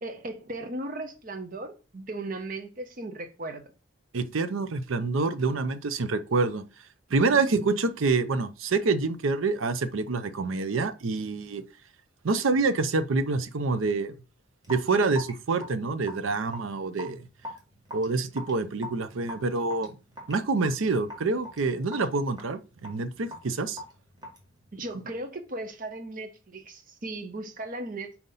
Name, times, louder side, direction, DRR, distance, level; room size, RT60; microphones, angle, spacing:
voice 1, 0.0-3.6 7.1-7.5 24.7-28.2, right 2 dB, 40° right, 0.7 m, -37 dB
voice 2, 4.1-6.6 7.1-11.6 12.2-14.1 14.7-17.3 17.9-20.0 20.3-23.8, right 3 dB, 80° right, 0.6 m, -27 dB
Raindrop / Drip, 14.6-25.1, equal, 20° right, 1.7 m, -43 dB
4.3 x 4.0 x 5.4 m
head